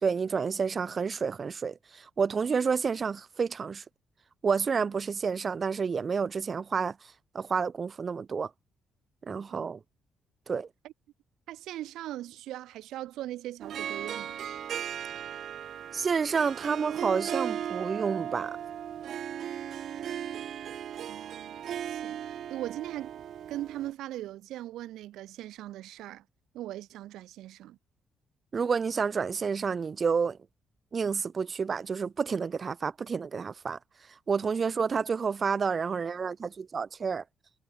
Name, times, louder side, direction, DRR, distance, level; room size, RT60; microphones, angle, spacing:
voice 1, 0.0-3.8 4.4-8.5 9.3-9.8 10.5-10.7 15.9-18.6 28.5-30.4 30.9-33.8 34.3-37.2, right 5 dB, 40° right, 1.7 m, -29 dB
voice 2, 11.5-14.3 21.1-26.2 26.5-27.8, right 14 dB, 85° right, 3.0 m, -40 dB
Harp, 13.6-23.9, right 9 dB, 65° right, 6.0 m, -37 dB
cardioid pair, 90°, 0 cm